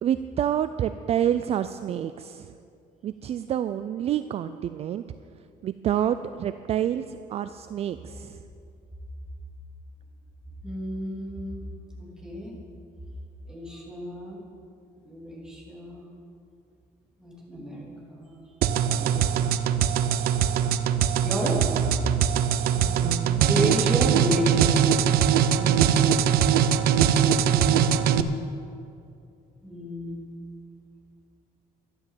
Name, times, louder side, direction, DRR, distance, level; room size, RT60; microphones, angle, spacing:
voice 1, 0.0-2.5 3.0-5.0 5.6-8.4 22.7-23.5 25.4-26.0, right 10 dB, 40° right, 11 dB, 0.3 m, -28 dB
voice 2, 10.6-11.6 12.0-12.6 13.5-14.4 15.0-16.1 17.2-19.7 21.2-22.5 23.5-25.0 27.2-28.2 29.6-30.2, equal, 5° right, -5 dB, 3.1 m, -32 dB
sound 1, 18.6-28.2, right 8 dB, 90° right, 0.7 m, -22 dB
12.5 x 11.5 x 7.5 m, 2.4 s
cardioid pair, 165°, 16 cm